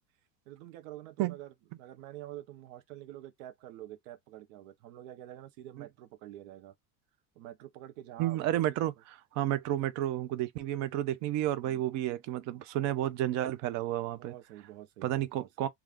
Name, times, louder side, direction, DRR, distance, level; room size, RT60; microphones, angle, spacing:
voice 1, 0.5-6.7 7.4-8.9 14.2-15.7, right 13 dB, 80° right, 0.7 m, -48 dB
voice 2, 8.2-8.9 9.4-14.3 15.0-15.7, right 13 dB, 45° right, 0.5 m, -31 dB
2.4 x 2.4 x 3.4 m
supercardioid pair, 140°, 39 cm